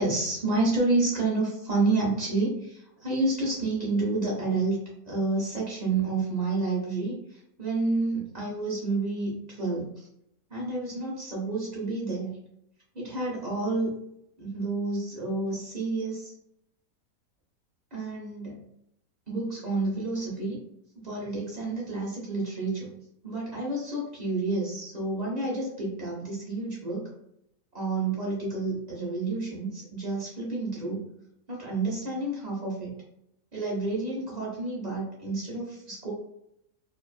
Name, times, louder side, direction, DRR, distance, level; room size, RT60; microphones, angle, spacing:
voice 1, 0.0-4.8 5.1-9.9 10.5-12.3 12.9-13.9 14.4-16.3 17.9-18.6 19.3-20.6 20.9-22.9 23.2-27.1 27.7-31.1 31.5-32.9 33.5-36.1, right 3 dB, 35° right, -4 dB, 0.7 m, -29 dB
2.6 x 2.4 x 2.4 m, 0.75 s
omnidirectional pair, 1.6 m